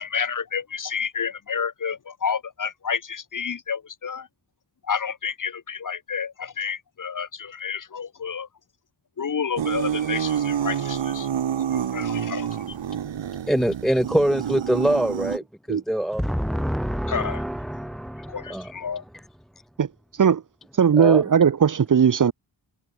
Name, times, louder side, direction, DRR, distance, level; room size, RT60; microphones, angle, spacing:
voice 1, 0.0-4.3 4.8-8.5 9.2-11.3 11.7-12.8 17.1-17.4 18.3-19.0, left 6 dB, 45° left, 1.1 m, -30 dB
sound 1, 9.6-15.4, right 9 dB, 75° right, 1.5 m, -28 dB
voice 2, 13.5-18.7 21.0-21.2, equal, ahead, 0.5 m, -25 dB
voice 3, 20.8-22.3, right 7 dB, 45° right, 0.8 m, -18 dB
wide cardioid pair, 145°, 45 cm